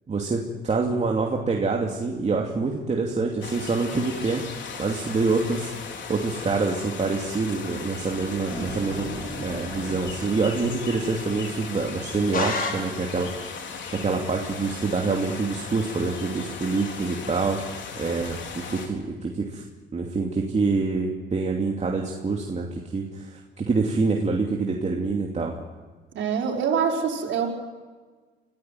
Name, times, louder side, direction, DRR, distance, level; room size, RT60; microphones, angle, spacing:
voice 1, 0.1-4.4 4.8-5.7 6.1-9.1 9.4-13.3 14.0-19.6 19.9-25.6, right 4 dB, 35° right, 0 dB, 2.7 m, -26 dB
sound 1, 3.4-18.9, left 5 dB, 65° left, 4.0 m, -37 dB
sound 2, 8.5-11.4, equal, 15° left, 7.0 m, -37 dB
sound 3, 12.3-13.4, left 3 dB, 45° left, 5.7 m, -30 dB
voice 2, 26.1-27.5, right 6 dB, 75° right, -1 dB, 5.2 m, -25 dB
25.5 x 15.5 x 9.2 m, 1.4 s
cardioid pair, 90°, 20 cm